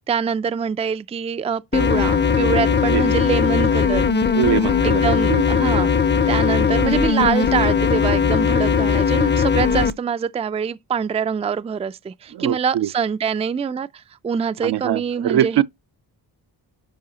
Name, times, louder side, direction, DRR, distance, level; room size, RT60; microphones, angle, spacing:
voice 1, 0.1-4.1 4.8-5.9 6.3-15.6, right 6 dB, 15° right, 0.3 m, -24 dB
sound 1, 1.7-9.9, left 6 dB, 25° left, 0.6 m, -18 dB
voice 2, 4.3-5.0 5.3-5.4 12.3-12.9 14.6-15.6, right 11 dB, 70° right, 0.6 m, -22 dB
10.5 x 4.7 x 2.8 m
cardioid pair, 80°, 42 cm